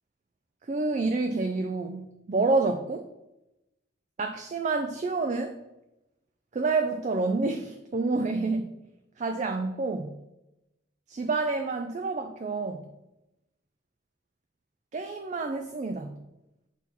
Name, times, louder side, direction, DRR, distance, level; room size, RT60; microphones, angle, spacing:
voice 1, 0.7-3.1 4.2-5.6 6.5-8.7 9.2-10.1 11.1-12.8 14.9-16.2, right 3 dB, 40° right, 6 dB, 0.4 m, -28 dB
8.2 x 2.9 x 5.5 m, 0.93 s
head